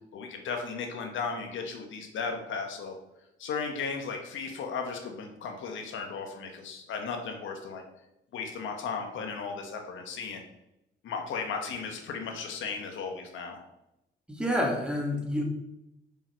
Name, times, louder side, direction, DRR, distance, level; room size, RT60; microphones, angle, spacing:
voice 1, 0.1-3.0 3.4-7.8 8.3-10.4 11.0-13.6, left 5 dB, 75° left, 3 dB, 1.2 m, -35 dB
voice 2, 14.3-15.4, equal, 5° right, -1 dB, 2.0 m, -28 dB
5.9 x 5.4 x 4.5 m, 0.88 s
cardioid pair, 90°, 20 cm